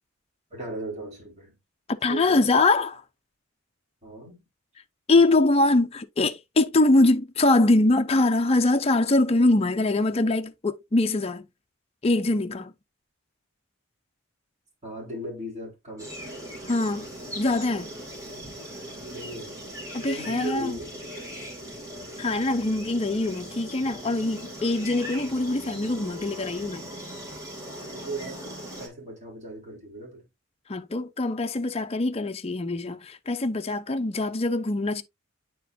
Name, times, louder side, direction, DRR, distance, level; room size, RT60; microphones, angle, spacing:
voice 1, 0.5-1.5 2.1-2.5 4.0-4.4 14.8-16.1 19.0-19.6 20.0-20.9 21.1-21.4 27.9-28.5 28.8-30.2, right 1 dB, 35° right, 4.2 m, -37 dB
voice 2, 2.0-3.0 5.1-11.5 12.0-12.7 16.7-17.1 17.4-17.9 19.9-20.8 22.2-26.9 30.7-35.0, left 2 dB, 30° left, 0.5 m, -23 dB
sound 1, 16.0-28.9, equal, 15° right, 2.4 m, -39 dB
9.1 x 4.6 x 2.6 m
head